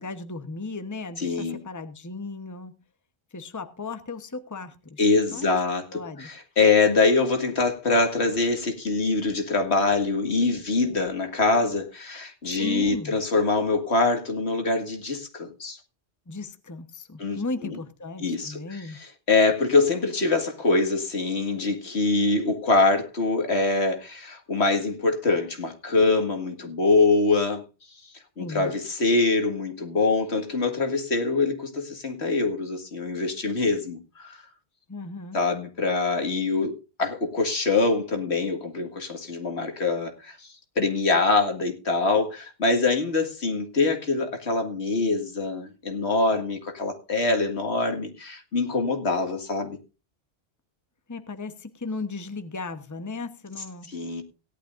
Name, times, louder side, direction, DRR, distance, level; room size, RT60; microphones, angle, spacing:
voice 1, 0.0-2.8 3.3-5.0 5.3-5.6 5.9-6.3 12.4-13.2 16.3-19.0 28.4-28.7 34.9-35.4 51.1-53.9, left 3 dB, 15° left, 1.0 m, -36 dB
voice 2, 1.2-1.6 5.0-15.8 17.2-17.4 18.2-18.8 19.3-27.6 28.4-34.4 35.3-40.5 40.8-49.8 53.9-54.2, left 3 dB, 75° left, 2.3 m, -24 dB
17.5 x 11.5 x 2.6 m
omnidirectional pair, 1.1 m